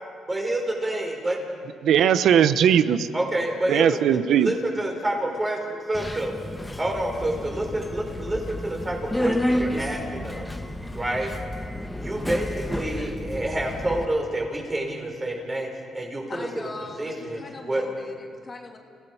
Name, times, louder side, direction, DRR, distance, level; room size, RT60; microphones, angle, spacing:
voice 1, 0.3-1.4 3.1-4.0 4.3-6.3 6.8-10.5 10.9-11.3 12.0-15.7 15.9-16.5 17.0-17.4 17.6-17.9, right 1 dB, 20° right, 1 dB, 5.5 m, -28 dB
voice 2, 1.8-3.1 3.7-4.5, right 9 dB, 75° right, 13 dB, 0.9 m, -19 dB
Subway metro underground, 5.9-14.1, left 1 dB, 10° left, 1.4 m, -31 dB
voice 3, 16.3-18.8, left 3 dB, 35° left, 1 dB, 3.0 m, -39 dB
29.5 x 17.0 x 5.7 m, 2.2 s
cardioid pair, 90°, 0 cm